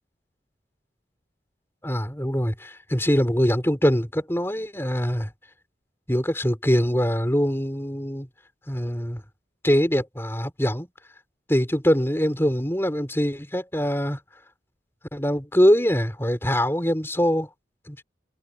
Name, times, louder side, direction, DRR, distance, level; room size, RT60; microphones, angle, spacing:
voice 1, 1.8-5.3 6.1-8.3 8.7-9.2 9.6-10.9 11.5-14.2 15.1-17.5 17.9-18.0, equal, 15° left, 5.1 m, -23 dB
head